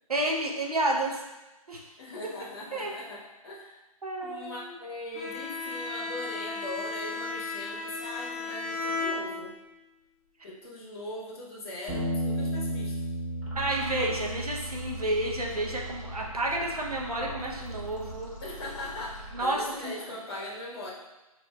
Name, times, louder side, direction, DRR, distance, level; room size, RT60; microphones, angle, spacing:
voice 1, 0.1-1.2 1.7-1.9 2.7-2.9 4.0-4.7 13.6-18.3 19.3-20.0, right 1 dB, 80° right, -1 dB, 0.7 m, -30 dB
voice 2, 2.0-3.8 4.2-9.6 10.4-13.0 18.4-20.9, left 1 dB, 45° left, -3 dB, 1.0 m, -40 dB
Bowed string instrument, 5.1-9.8, left 3 dB, 25° left, 0.5 m, -35 dB
Bass guitar, 11.9-18.1, equal, 20° right, 1.3 m, -35 dB
sound 1, 13.4-19.9, right 1 dB, 55° right, 1.4 m, -43 dB
5.2 x 2.6 x 2.2 m, 1.1 s
figure-of-eight pair, 140°, 19 cm